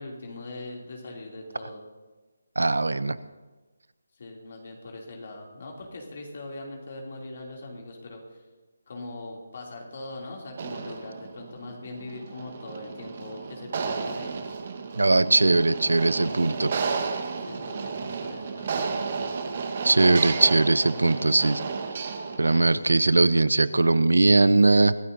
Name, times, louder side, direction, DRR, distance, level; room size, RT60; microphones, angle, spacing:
voice 1, 0.0-1.8 4.2-8.5 8.9-14.5 16.9-17.1 17.4-19.0, left 2 dB, 50° left, -1 dB, 2.9 m, -41 dB
voice 2, 2.6-3.2 15.0-16.7 19.8-21.6 22.4-24.9, right 2 dB, 85° right, 16 dB, 0.7 m, -20 dB
sound 1, 10.5-22.9, right 5 dB, 40° right, 1.4 m, -33 dB
25.0 x 13.0 x 2.7 m, 1.3 s
figure-of-eight pair, 160°, 0 cm